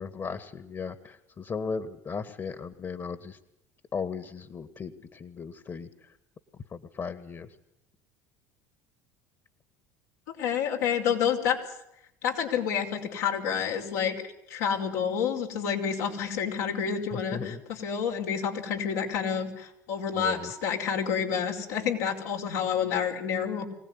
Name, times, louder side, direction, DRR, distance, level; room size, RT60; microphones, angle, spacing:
voice 1, 0.0-3.4 3.9-6.2 6.7-7.6 17.1-17.6 20.1-20.5, left 5 dB, 35° left, 11 dB, 2.0 m, -36 dB
voice 2, 10.4-11.6 12.2-23.7, left 7 dB, 80° left, 2 dB, 5.5 m, -29 dB
25.0 x 18.5 x 9.9 m, 0.81 s
hypercardioid pair, 80°, 9 cm